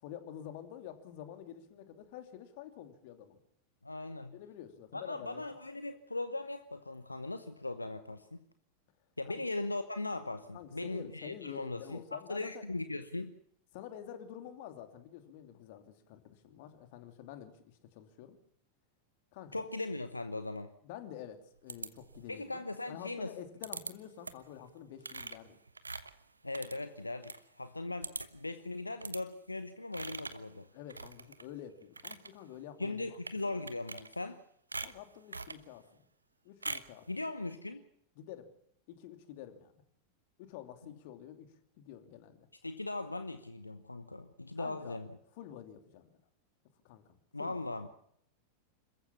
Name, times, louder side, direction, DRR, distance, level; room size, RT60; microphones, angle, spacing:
voice 1, 0.0-3.4 4.3-5.4 9.3-9.4 10.5-12.6 13.7-18.4 19.3-19.6 20.8-25.6 30.7-33.5 34.8-36.0 36.4-37.1 38.2-38.5 38.9-39.7 40.4-42.5 44.6-45.0 45.3-46.1 46.8-47.6, left 10 dB, 50° left, 7 dB, 2.8 m, -48 dB
voice 2, 3.8-4.3 4.9-8.4 9.2-13.3 19.5-20.7 22.3-23.3 26.4-30.7 32.8-34.4 37.1-37.8 42.6-45.1 47.3-47.9, left 2 dB, 85° left, 10 dB, 1.0 m, -39 dB
sound 1, 21.7-22.4 23.6-23.9 24.2-24.5 25.0-27.4 27.7-27.8 28.0-28.5 29.0-29.2 29.9-30.5 30.9-31.5 31.8-32.3 33.1-33.4 33.7-34.4 34.7-35.6 36.6-37.0, right 3 dB, 80° right, 1.1 m, -43 dB
27.0 x 15.0 x 7.2 m, 0.71 s
figure-of-eight pair, 90°, 0 cm